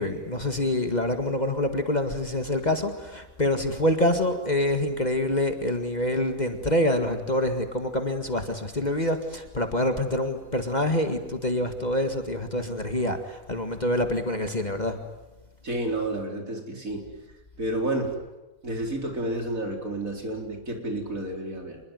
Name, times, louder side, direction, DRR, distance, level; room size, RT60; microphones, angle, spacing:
voice 1, 0.0-15.0, left 1 dB, 30° left, 6 dB, 2.0 m, -26 dB
voice 2, 15.6-17.0 17.6-18.1 18.6-21.8, right 1 dB, 75° right, 3 dB, 4.9 m, -30 dB
27.0 x 21.5 x 9.4 m, 1.1 s
omnidirectional pair, 1.4 m